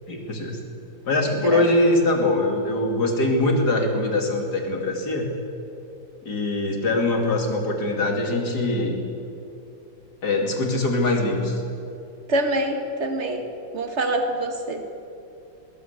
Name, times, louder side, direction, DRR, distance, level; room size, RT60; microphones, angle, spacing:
voice 1, 0.1-0.6 1.1-5.3 6.2-9.0 10.2-11.6, left 2 dB, 50° left, 2 dB, 3.1 m, -22 dB
voice 2, 1.3-1.6 12.3-13.4 13.7-14.8, right 1 dB, 35° right, 5 dB, 1.8 m, -25 dB
20.0 x 17.5 x 8.2 m, 2.7 s
omnidirectional pair, 2.2 m